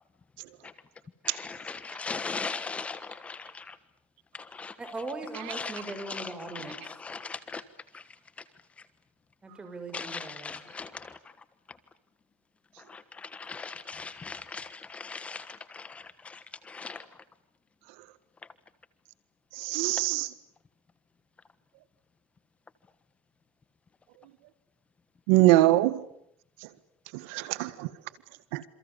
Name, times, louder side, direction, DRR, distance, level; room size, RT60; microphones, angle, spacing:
voice 1, 1.4-3.7 4.5-4.7 5.5-5.7 6.1-6.3 6.5-6.8 7.0-7.6 7.9-8.0 9.9-11.1 12.9-16.4 16.7-17.0, left 4 dB, 20° left, 1.3 m, -39 dB
voice 2, 4.8-6.8 9.4-10.5, right 2 dB, 15° right, 6.1 m, -39 dB
voice 3, 19.5-20.3 25.3-26.0 27.1-27.9 28.5-28.6, right 17 dB, 80° right, 1.7 m, -23 dB
29.0 x 28.0 x 7.1 m
supercardioid pair, 130°, 7 cm